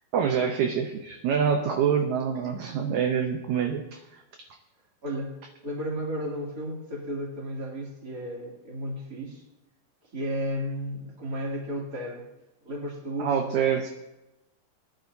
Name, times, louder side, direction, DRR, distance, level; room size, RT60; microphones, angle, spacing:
voice 1, 0.1-4.2 13.2-13.9, right 7 dB, 75° right, 4 dB, 1.8 m, -26 dB
voice 2, 5.0-5.3 5.6-9.4 10.1-12.2 12.6-13.5, equal, 25° right, -4 dB, 2.9 m, -33 dB
19.5 x 11.0 x 2.7 m, 1.0 s
omnidirectional pair, 4.1 m